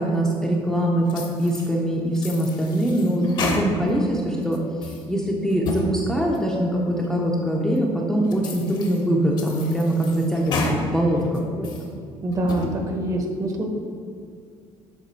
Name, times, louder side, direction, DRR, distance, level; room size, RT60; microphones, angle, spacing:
voice 1, 0.0-4.6 5.1-11.2 11.5-11.7, right 1 dB, 5° left, -3 dB, 0.5 m, -23 dB
sound 1, 1.1-1.7 2.1-4.0 4.4-5.0 5.5-5.9 6.3-6.4 7.0-7.1 7.8-7.9 8.3-9.0 9.4-10.8 11.2-11.9 12.3-12.7, left 3 dB, 40° left, 0.8 m, -31 dB
voice 2, 12.2-13.7, right 1 dB, 30° right, 3 dB, 0.8 m, -25 dB
7.3 x 3.6 x 4.5 m, 2.4 s
cardioid pair, 160°, 12 cm